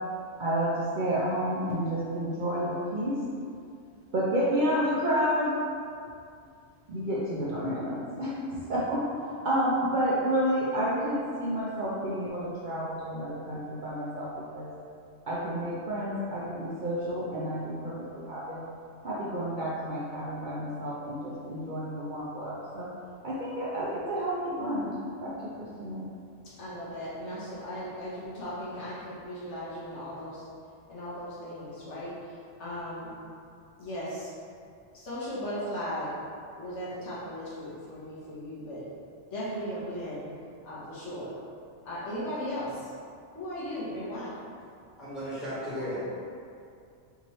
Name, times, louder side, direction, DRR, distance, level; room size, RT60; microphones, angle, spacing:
voice 1, 0.4-3.2 4.1-5.6 6.9-8.3 8.7-14.3 14.5-14.7 15.3-18.6 19.0-22.9 23.2-24.9 25.2-26.0, equal, 55° right, -8 dB, 0.6 m, -30 dB
voice 2, 26.4-30.4 30.9-33.1 33.8-34.3 34.9-36.2 36.6-38.9 39.3-40.3 40.6-41.3 41.9-42.9 43.3-44.4, equal, 70° left, -8 dB, 1.2 m, -37 dB
voice 3, 45.0-46.2, equal, ahead, -12 dB, 1.2 m, -34 dB
3.5 x 2.9 x 3.0 m, 2.4 s
omnidirectional pair, 1.2 m